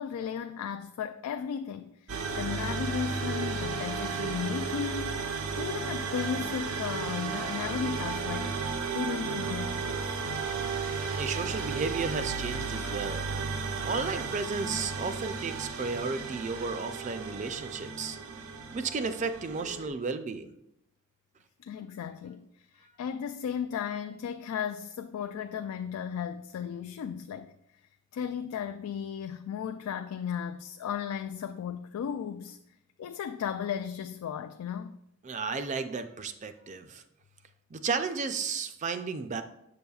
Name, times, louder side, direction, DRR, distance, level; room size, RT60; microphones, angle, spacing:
voice 1, 0.0-1.9 2.4-5.2 5.5-8.5 8.9-10.2 21.6-22.5 22.8-27.5 28.1-32.6 33.0-35.0, left 7 dB, 90° left, 0.3 m, -35 dB
sound 1, 2.1-19.9, right 4 dB, 90° right, 0.7 m, -34 dB
voice 2, 11.2-13.3 13.8-18.2 18.7-20.5 35.2-37.0 37.7-39.4, right 4 dB, 35° right, 0.4 m, -33 dB
6.9 x 6.8 x 2.3 m
head